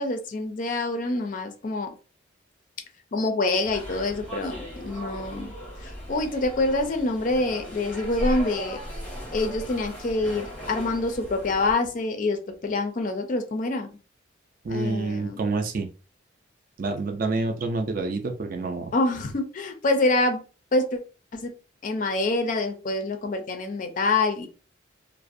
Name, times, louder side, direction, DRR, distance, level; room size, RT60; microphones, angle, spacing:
voice 1, 0.0-1.9 3.1-5.5 5.8-8.8 9.3-13.9 14.7-15.4 18.9-20.4 20.7-21.0 21.3-21.5 21.8-24.5, left 2 dB, 40° left, 6 dB, 0.4 m, -26 dB
sound 1, 3.6-11.7, equal, 5° left, 0.7 m, -37 dB
voice 2, 14.6-15.9 16.8-18.9, right 3 dB, 45° right, 5 dB, 0.4 m, -28 dB
2.4 x 2.0 x 2.5 m, 0.35 s
head